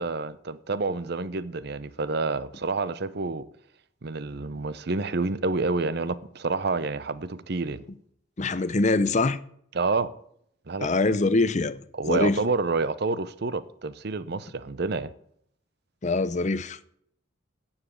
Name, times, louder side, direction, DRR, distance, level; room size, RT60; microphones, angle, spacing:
voice 1, 0.0-3.5 4.0-7.8 9.7-10.1 10.7-11.2 11.9-15.1, right 3 dB, 55° right, 0.7 m, -28 dB
voice 2, 8.4-9.4 10.8-11.8 12.1-12.4 16.0-16.9, left 3 dB, 35° left, 0.6 m, -24 dB
9.7 x 7.3 x 8.6 m
head